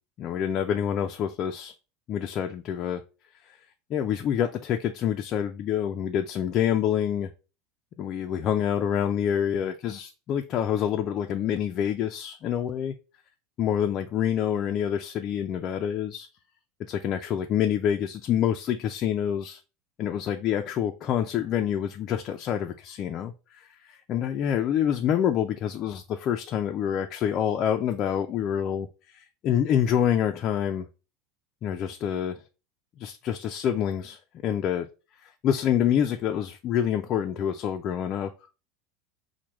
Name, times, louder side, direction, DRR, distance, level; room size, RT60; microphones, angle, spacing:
voice 1, 0.2-1.7 2.1-3.0 3.4-3.6 3.9-7.3 8.0-12.9 13.6-16.3 16.9-19.6 20.0-30.9 31.6-32.4 33.0-34.9 35.2-38.3, left 9 dB, 45° left, 0.3 m, -27 dB
4.6 x 2.1 x 3.0 m
supercardioid pair, 110°, 0 cm